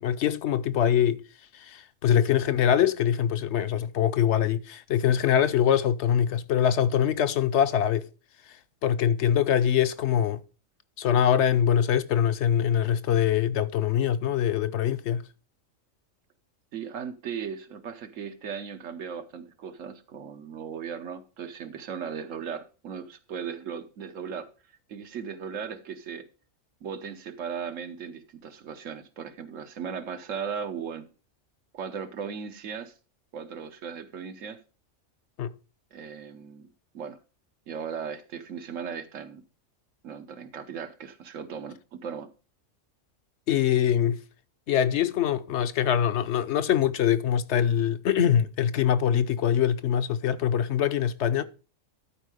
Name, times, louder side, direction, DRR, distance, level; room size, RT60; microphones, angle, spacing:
voice 1, 0.0-1.2 1.5-8.0 8.8-10.4 11.0-15.2 35.4-35.5 43.5-44.2 44.7-51.4, left 9 dB, 70° left, 0.9 m, -23 dB
voice 2, 16.7-24.5 24.9-26.2 26.8-31.1 31.7-32.9 33.3-34.6 35.9-36.7 36.9-37.2 37.7-39.4 40.0-41.8 42.0-42.3, right 7 dB, 85° right, 1.3 m, -37 dB
12.0 x 4.6 x 4.9 m
omnidirectional pair, 1.3 m